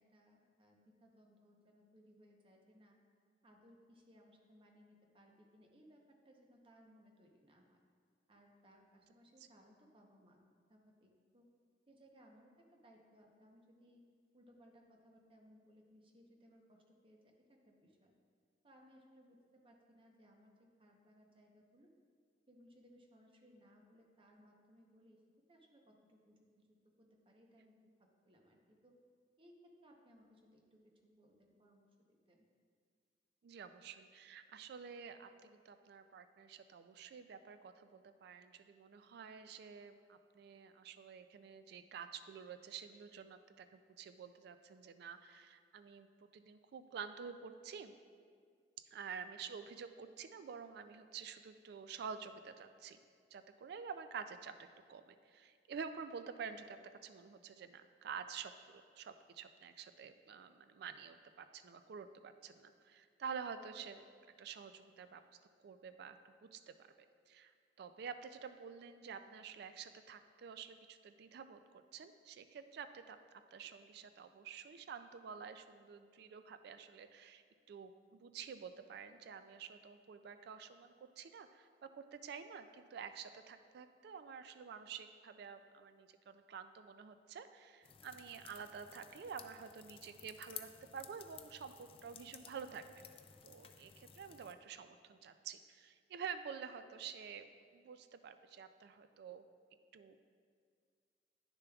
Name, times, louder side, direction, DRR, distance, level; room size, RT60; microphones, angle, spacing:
voice 1, 0.0-3.0 3.4-7.8 8.3-10.4 10.7-11.5 11.9-14.1 14.3-17.2 17.5-18.1 18.6-21.9 22.5-25.2 25.5-26.7 27.0-28.9 29.4-32.5, equal, 30° right, 1 dB, 0.8 m, -65 dB
voice 2, 33.4-47.9 48.9-53.0 53.3-64.0 64.4-65.2 65.6-66.7 67.3-73.2 73.5-93.0 93.4-99.4 99.9-100.2, right 6 dB, 65° right, 10 dB, 0.3 m, -49 dB
sound 1, 87.8-94.5, left 9 dB, 30° left, 0.3 m, -55 dB
9.8 x 6.7 x 2.3 m, 2.1 s
head